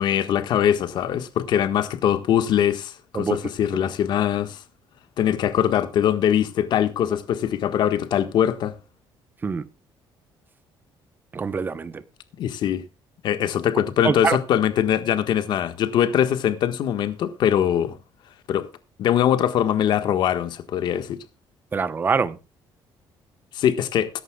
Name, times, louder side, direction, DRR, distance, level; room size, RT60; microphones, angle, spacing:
voice 1, 0.0-4.6 5.2-8.8 12.4-12.8 13.2-18.0 18.5-18.7 19.0-21.2 23.5-24.1, left 10 dB, 55° left, 1.5 m, -22 dB
voice 2, 11.3-12.0 14.0-14.4 21.7-22.4, right 5 dB, 20° right, 0.9 m, -24 dB
21.0 x 11.0 x 2.3 m
cardioid pair, 165°, 9 cm